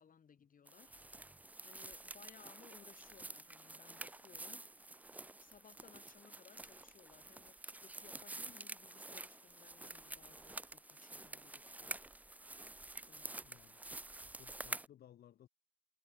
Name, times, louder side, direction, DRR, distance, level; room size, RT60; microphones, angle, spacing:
voice 1, 0.0-1.3 1.6-4.8 5.4-12.0 13.1-13.6, left 7 dB, 60° left, 2.0 m, -63 dB
sound 1, 0.7-14.9, right 2 dB, 10° right, 0.3 m, -49 dB
voice 2, 13.4-13.8 14.2-15.5, left 11 dB, 80° left, 0.6 m, -61 dB
cardioid pair, 100°, 16 cm